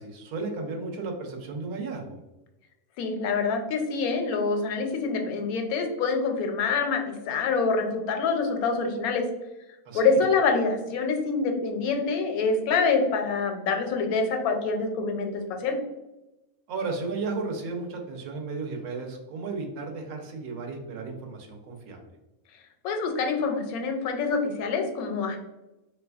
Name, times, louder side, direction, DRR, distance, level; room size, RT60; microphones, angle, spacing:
voice 1, 0.0-2.2 9.9-10.2 16.7-22.0, right 3 dB, 85° right, 2 dB, 1.2 m, -34 dB
voice 2, 3.0-9.2 9.9-15.8 22.8-25.4, left 4 dB, 85° left, 4 dB, 1.1 m, -26 dB
3.2 x 2.9 x 2.3 m, 1.0 s
omnidirectional pair, 1.5 m